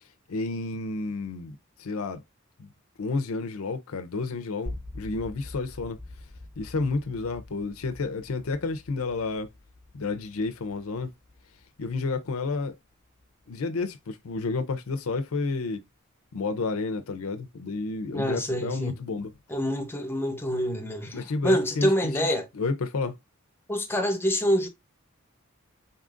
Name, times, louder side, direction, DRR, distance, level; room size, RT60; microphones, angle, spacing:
voice 1, 0.3-2.2 2.6-2.7 3.0-6.0 6.6-9.5 9.9-11.1 11.8-12.7 13.5-15.8 16.3-19.3 21.1-22.3 22.5-23.2, left 3 dB, 85° left, 0.5 m, -30 dB
sound 1, 4.7-14.6, left 1 dB, 35° right, 1.7 m, -45 dB
voice 2, 18.1-18.9 19.5-22.5 23.7-24.7, equal, 10° left, 0.7 m, -26 dB
4.0 x 3.8 x 2.4 m
head